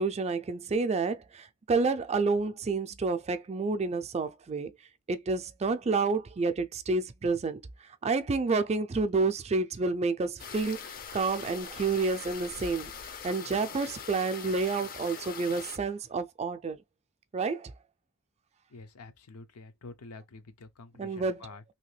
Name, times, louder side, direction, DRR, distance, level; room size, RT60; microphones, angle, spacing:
voice 1, 0.0-4.7 5.1-7.6 8.0-10.8 11.1-12.9 13.2-16.8 17.3-17.7 21.0-21.4, right 4 dB, 30° right, 0.4 m, -29 dB
sound 1, 10.4-15.8, left 6 dB, 40° left, 0.5 m, -42 dB
voice 2, 18.7-21.6, left 3 dB, 90° left, 0.7 m, -48 dB
3.0 x 2.8 x 3.2 m
head